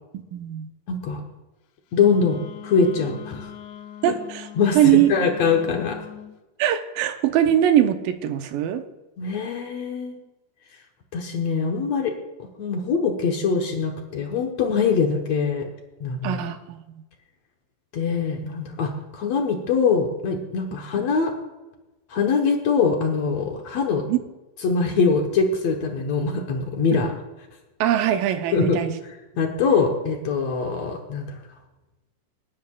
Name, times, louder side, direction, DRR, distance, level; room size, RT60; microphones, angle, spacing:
voice 1, 0.1-0.7 4.0-4.5 4.8-5.1 6.6-8.8 16.2-17.0 24.1-24.2 26.9-27.0 27.8-29.0, right 11 dB, 85° right, 8 dB, 2.5 m, -21 dB
voice 2, 0.9-1.2 1.9-3.5 4.6-6.0 9.2-10.2 11.1-12.2 12.6-15.6 16.0-16.4 17.9-21.3 22.1-24.0 24.6-27.1 28.5-28.8 29.4-31.4, left 5 dB, 60° left, 2 dB, 2.0 m, -23 dB
Wind instrument woodwind instrument, 1.9-6.3, left 10 dB, 80° left, 1.6 m, -41 dB
26.5 x 10.5 x 2.4 m, 1.1 s
omnidirectional pair, 4.0 m